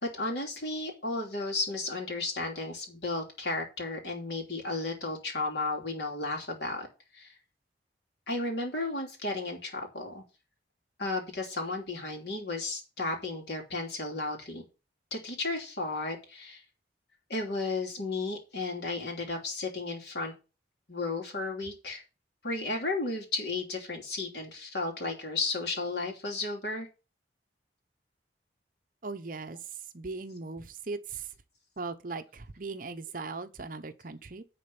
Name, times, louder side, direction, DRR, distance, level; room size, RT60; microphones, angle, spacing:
voice 1, 0.0-6.9 7.1-7.3 8.3-10.2 11.0-14.6 15.1-16.6 17.3-20.3 20.9-22.0 22.4-26.9, left 3 dB, 65° left, 2.8 m, -33 dB
voice 2, 29.0-29.6 29.9-31.2 31.8-34.4, right 3 dB, 45° right, 0.8 m, -39 dB
10.0 x 4.2 x 7.1 m
head